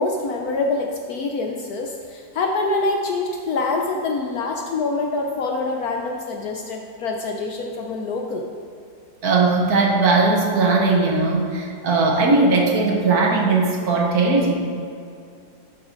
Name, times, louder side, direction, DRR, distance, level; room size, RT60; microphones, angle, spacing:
voice 1, 0.0-8.5, left 3 dB, 70° left, 2 dB, 0.9 m, -25 dB
voice 2, 9.2-14.6, right 3 dB, 60° right, 0 dB, 1.2 m, -18 dB
11.5 x 7.0 x 2.5 m, 2.5 s
omnidirectional pair, 2.0 m